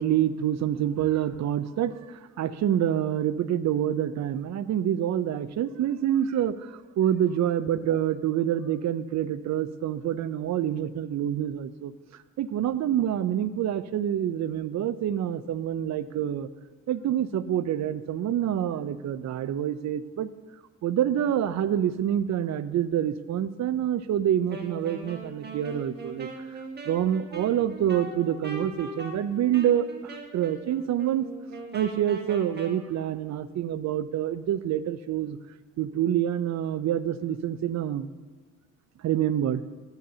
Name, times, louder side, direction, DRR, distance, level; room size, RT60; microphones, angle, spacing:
voice 1, 0.0-11.9 12.4-16.5 16.9-20.3 20.8-31.3 31.7-35.4 35.8-38.1 39.0-39.6, right 10 dB, 65° right, 14 dB, 0.6 m, -27 dB
Wind instrument woodwind instrument, 24.5-32.8, right 2 dB, 35° right, 1.6 m, -40 dB
13.5 x 13.0 x 2.8 m, 1.5 s
cardioid pair, 90°, 30 cm